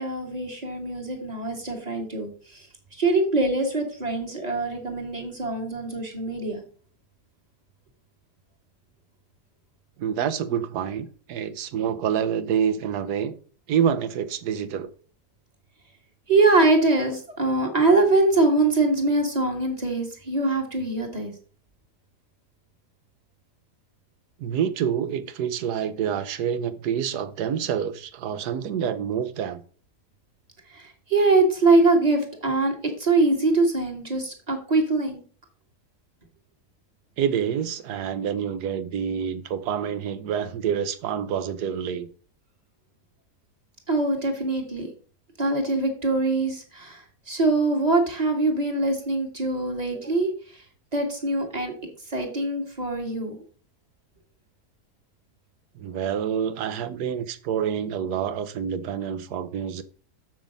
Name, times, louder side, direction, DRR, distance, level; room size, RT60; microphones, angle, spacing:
voice 1, 0.0-6.6 16.3-21.3 30.7-35.2 43.9-44.9 45.4-50.6 50.9-51.7 52.1-53.4, right 2 dB, 25° right, 1.8 m, -23 dB
voice 2, 10.0-13.4 13.7-14.9 24.4-29.6 37.2-42.1 55.8-59.8, right 8 dB, 75° right, 1.3 m, -27 dB
7.5 x 6.1 x 5.2 m
omnidirectional pair, 1.8 m